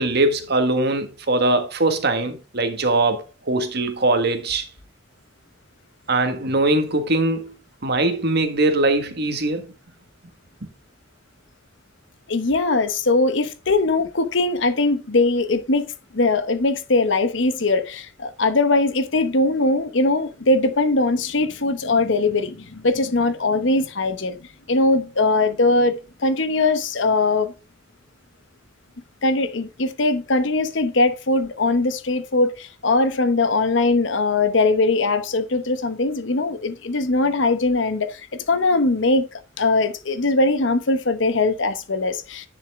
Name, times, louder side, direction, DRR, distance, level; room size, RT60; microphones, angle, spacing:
voice 1, 0.0-4.7 6.1-7.5 7.8-9.7, right 2 dB, 55° right, 1.6 m, -21 dB
voice 2, 12.3-24.4 24.7-27.5 29.2-38.2 38.5-42.5, left 2 dB, 65° left, 0.9 m, -21 dB
10.0 x 6.5 x 3.6 m
head